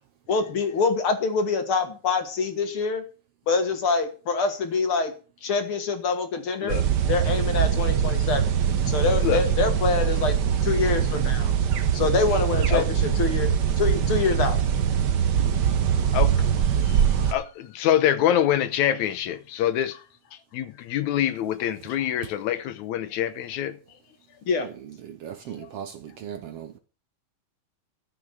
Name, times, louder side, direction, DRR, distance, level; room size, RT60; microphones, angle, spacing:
voice 1, 0.3-3.0 3.5-5.1 5.4-6.8 7.1-8.5 8.9-10.4 10.6-11.5 11.9-13.5 13.8-14.6 24.5-24.7, left 4 dB, 50° left, 2.0 m, -25 dB
sound 1, 6.7-17.3, right 8 dB, 85° right, 0.9 m, -23 dB
voice 2, 16.8-20.0 20.5-23.8, left 11 dB, 75° left, 2.1 m, -25 dB
voice 3, 25.2-25.9 26.2-26.8, right 9 dB, 70° right, 1.6 m, -37 dB
13.0 x 6.2 x 6.7 m
omnidirectional pair, 3.5 m